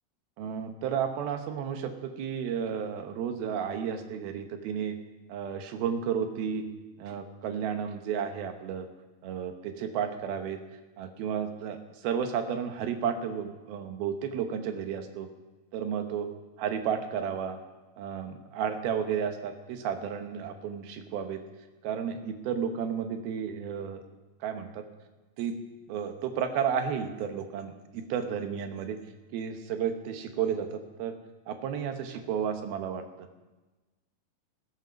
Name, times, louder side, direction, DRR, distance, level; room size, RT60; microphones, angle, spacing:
voice 1, 0.4-5.0 5.3-6.7 7.0-8.9 9.2-10.6 11.0-15.3 15.7-16.3 16.6-17.6 18.0-21.4 21.8-24.0 24.4-24.8 25.4-25.6 25.9-29.0 29.3-31.2 31.5-33.0, right 7 dB, 90° right, 6 dB, 3.0 m, -32 dB
15.5 x 13.5 x 5.2 m, 1.2 s
omnidirectional pair, 4.2 m